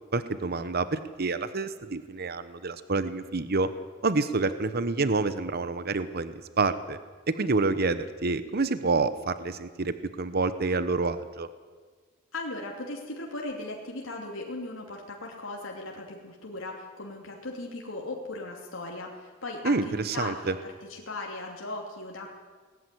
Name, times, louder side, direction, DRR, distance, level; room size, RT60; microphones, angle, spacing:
voice 1, 0.1-3.7 4.0-7.0 7.3-11.5 19.6-20.5, right 3 dB, 50° right, 12 dB, 1.0 m, -28 dB
voice 2, 12.3-22.3, left 2 dB, 80° left, -1 dB, 2.9 m, -38 dB
19.0 x 14.5 x 10.0 m, 1.5 s
head